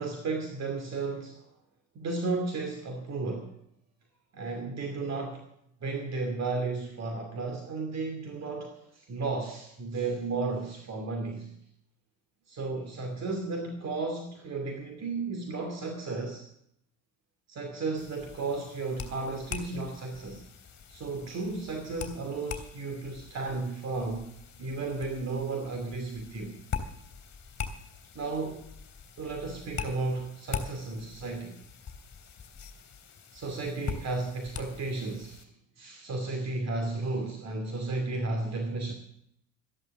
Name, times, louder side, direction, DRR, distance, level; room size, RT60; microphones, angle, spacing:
voice 1, 0.0-1.4 1.9-3.6 4.3-5.4 5.8-11.6 12.5-16.4 17.5-20.4 20.9-24.3 24.6-26.5 28.1-28.7 29.2-31.6 33.3-35.5 35.8-38.9, right 3 dB, 45° right, 4 dB, 2.6 m, -34 dB
sound 1, 18.0-35.4, left 6 dB, 30° left, 3.3 m, -42 dB
14.0 x 11.0 x 7.3 m, 0.73 s
hypercardioid pair, 75°, 37 cm